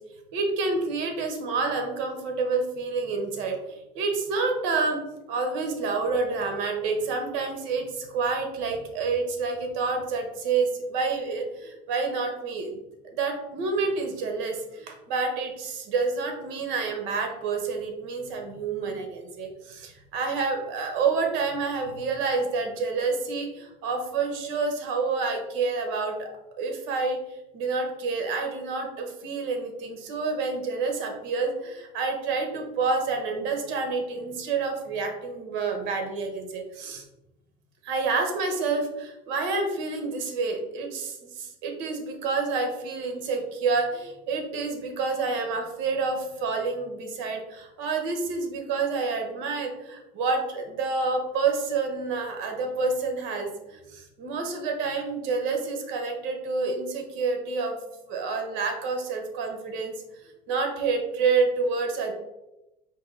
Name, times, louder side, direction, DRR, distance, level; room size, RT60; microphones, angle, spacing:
voice 1, 0.3-5.0 5.3-12.7 13.0-26.3 26.6-27.2 27.5-37.0 37.8-57.8 58.1-59.9 60.5-62.1, right 4 dB, 70° right, 4 dB, 1.0 m, -28 dB
4.7 x 2.7 x 3.7 m, 0.94 s
cardioid pair, 170°, 20 cm